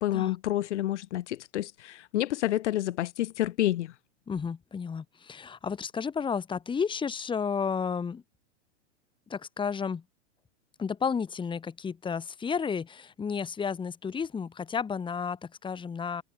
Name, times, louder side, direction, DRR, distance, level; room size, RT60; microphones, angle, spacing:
voice 1, 0.0-3.9, left 14 dB, 70° left, 2.0 m, -29 dB
voice 2, 4.3-8.2 9.3-10.0 10.8-16.2, left 6 dB, 15° left, 2.0 m, -32 dB
hypercardioid pair, 130°, 36 cm